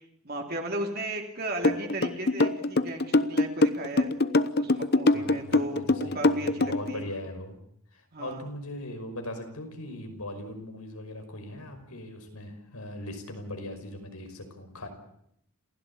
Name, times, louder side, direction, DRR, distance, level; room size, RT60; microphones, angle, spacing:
voice 1, 0.2-4.1 4.5-7.1 8.1-8.5, right 1 dB, 45° right, 1 dB, 2.9 m, -35 dB
sound 1, 1.6-6.9, left 2 dB, 45° left, 0.8 m, -23 dB
voice 2, 5.1-7.6 7.9-14.9, left 1 dB, 90° left, 6 dB, 5.5 m, -40 dB
28.0 x 16.0 x 8.6 m, 0.74 s
head